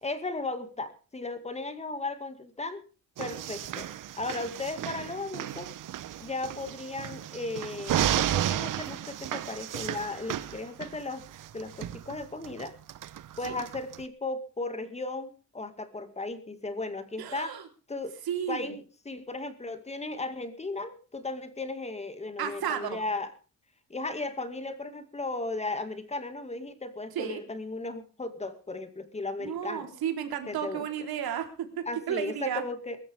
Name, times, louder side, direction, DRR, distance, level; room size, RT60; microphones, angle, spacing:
voice 1, 0.0-2.8 3.2-3.9 4.2-5.7 6.2-11.3 11.5-12.7 13.4-17.6 17.9-18.1 18.5-23.3 23.9-29.9 30.5-30.9 31.9-33.0, left 2 dB, 20° left, 10 dB, 2.2 m, -36 dB
sound 1, 3.2-14.0, right 11 dB, 60° right, 0.9 m, -33 dB
voice 2, 17.2-17.6 18.3-18.7 22.4-23.0 27.1-27.4 29.4-32.6, right 9 dB, 80° right, 5 dB, 3.9 m, -33 dB
22.5 x 13.5 x 3.6 m, 0.35 s
cardioid pair, 145°, 36 cm